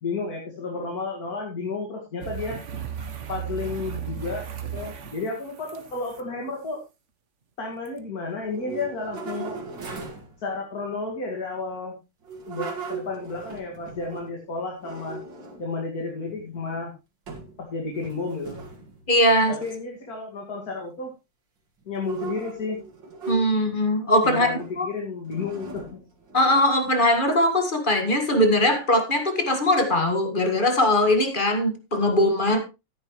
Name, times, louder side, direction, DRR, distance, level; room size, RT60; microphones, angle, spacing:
voice 1, 0.0-2.6 3.3-4.4 4.7-6.8 7.6-9.6 10.4-11.9 12.5-15.2 15.6-16.9 17.6-18.6 19.6-21.1 21.9-22.8 24.2-25.8, left 3 dB, 45° left, 2.6 m, -32 dB
sound 1, 2.2-6.2 7.9-8.0, right 8 dB, 45° right, 1.2 m, -36 dB
sound 2, 8.4-10.3 12.2-14.4 14.8-15.7 16.3-16.8 17.3-17.6 17.9-19.0 19.5-19.7 21.9-23.8 24.4-24.8 25.3-26.8, right 4 dB, 60° right, 2.8 m, -38 dB
voice 2, 19.1-19.6 23.3-24.9 26.3-32.6, left 1 dB, 25° left, 1.8 m, -21 dB
13.0 x 10.5 x 3.2 m
omnidirectional pair, 2.3 m